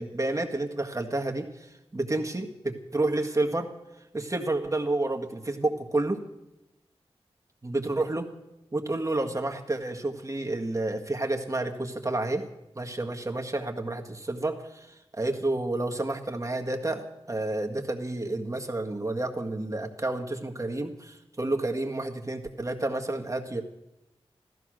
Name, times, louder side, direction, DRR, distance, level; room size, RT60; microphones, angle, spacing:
voice 1, 0.0-1.7 1.9-3.7 4.1-6.2 7.6-8.3 8.7-12.5 12.7-14.9 15.1-23.6, right 2 dB, 30° right, 3 dB, 1.8 m, -30 dB
15.5 x 14.0 x 6.4 m, 0.94 s
wide cardioid pair, 80°, 10 cm